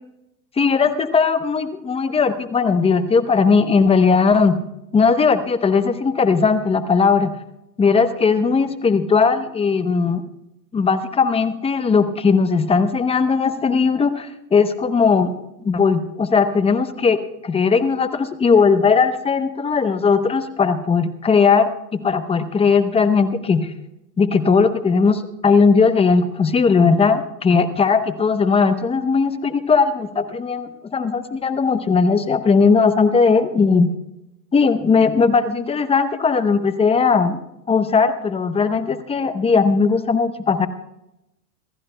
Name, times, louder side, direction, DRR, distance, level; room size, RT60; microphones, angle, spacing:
voice 1, 0.6-4.6 4.9-7.3 7.8-10.2 10.7-15.3 15.6-17.2 17.4-23.7 24.2-33.9 34.5-37.4 37.7-40.7, left 5 dB, 10° left, 11 dB, 0.7 m, -18 dB
27.0 x 14.5 x 2.2 m, 0.87 s
hypercardioid pair, 120°, 49 cm